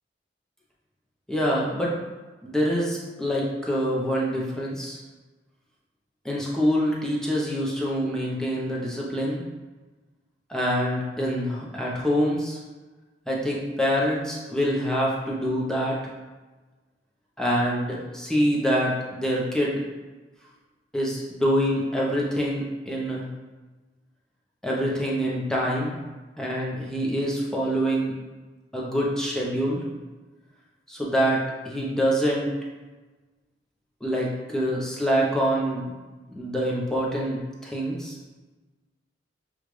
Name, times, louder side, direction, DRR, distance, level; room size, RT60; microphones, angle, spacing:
voice 1, 1.3-2.0 2.4-5.0 6.2-9.4 10.5-12.6 13.3-16.0 17.4-19.8 20.9-23.3 24.6-26.0 26.4-28.1 28.7-29.8 30.9-32.5 34.0-35.9 36.3-38.2, equal, 5° left, -4 dB, 0.7 m, -25 dB
6.6 x 2.4 x 3.2 m, 1.2 s
head